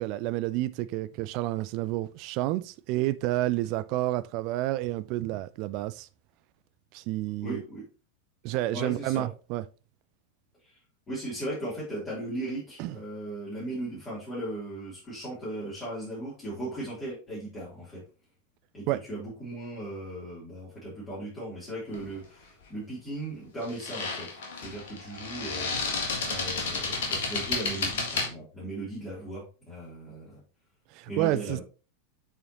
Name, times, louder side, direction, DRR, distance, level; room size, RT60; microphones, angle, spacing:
voice 1, 0.0-6.1 6.9-7.6 8.4-9.6 12.8-12.9 18.9-19.0 30.9-31.6, right 16 dB, 40° right, 0.5 m, -30 dB
voice 2, 7.4-7.9 8.7-9.3 10.6-10.7 11.1-18.0 18.7-30.4 31.1-31.6, right 1 dB, 20° left, 3.4 m, -37 dB
sound 1, 21.9-22.2 23.6-28.3, left 4 dB, 55° left, 1.7 m, -31 dB
7.8 x 4.9 x 3.0 m
figure-of-eight pair, 90°, 0 cm